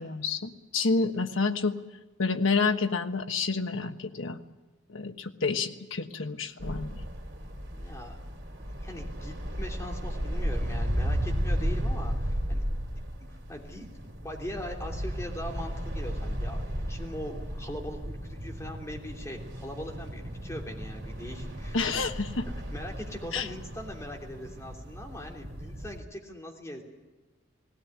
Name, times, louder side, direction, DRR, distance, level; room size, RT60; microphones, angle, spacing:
voice 1, 0.0-1.8 2.2-4.4 4.9-7.0 21.7-22.4 23.3-23.5, left 4 dB, 75° left, 7 dB, 1.3 m, -29 dB
sound 1, 6.6-26.0, equal, 60° right, 3.4 m, -34 dB
voice 2, 7.7-8.2 8.6-12.6 13.3-22.0 22.7-26.8, equal, 15° left, 0 dB, 3.1 m, -41 dB
18.5 x 17.5 x 9.8 m, 1.2 s
head